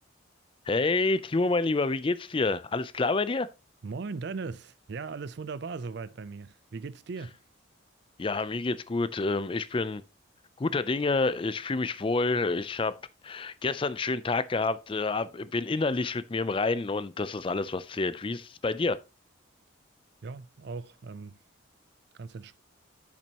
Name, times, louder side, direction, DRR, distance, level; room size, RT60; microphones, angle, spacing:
voice 1, 0.7-3.5 8.2-10.0 10.6-19.0, left 3 dB, 25° left, 0.4 m, -28 dB
voice 2, 3.8-7.4 20.2-21.4 22.2-22.6, right 4 dB, 55° right, 0.4 m, -38 dB
10.5 x 6.0 x 2.9 m
head